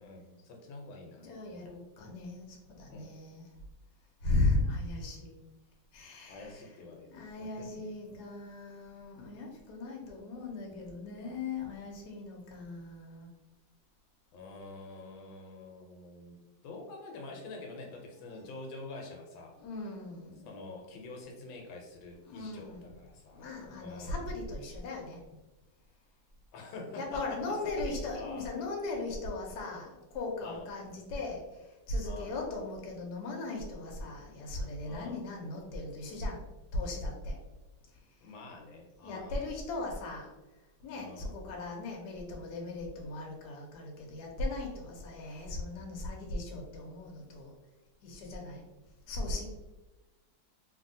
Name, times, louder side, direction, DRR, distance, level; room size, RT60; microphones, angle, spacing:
voice 1, 0.0-1.8 2.9-3.2 6.3-7.7 14.3-19.6 20.4-23.5 23.8-24.3 26.5-27.2 27.5-28.5 30.4-30.7 32.0-32.4 34.8-35.2 38.2-39.4 40.9-41.3, left 2 dB, 85° left, 1 dB, 1.4 m, -47 dB
voice 2, 1.2-3.4 4.2-5.3 5.9-6.6 7.1-13.3 19.6-20.4 22.3-22.9 23.3-25.2 26.9-36.4 36.7-37.4 39.0-40.3 40.8-47.5 48.0-48.7 49.1-49.5, left 2 dB, 70° left, 0 dB, 1.1 m, -37 dB
3.0 x 2.6 x 2.6 m, 1.1 s
omnidirectional pair, 2.1 m